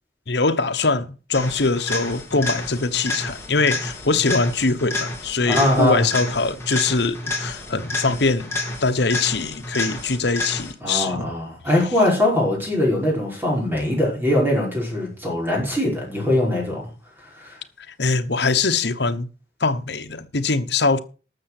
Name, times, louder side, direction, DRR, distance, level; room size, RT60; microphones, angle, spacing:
voice 1, 0.3-11.3 18.0-19.3 19.6-21.0, left 3 dB, 70° left, 1.1 m, -22 dB
sound 1, 1.3-10.9 18.9-19.0, left 2 dB, 15° left, 2.8 m, -30 dB
voice 2, 5.5-6.1 10.8-16.9 17.3-17.6, left 1 dB, 10° right, 5.4 m, -21 dB
12.5 x 7.0 x 6.0 m
head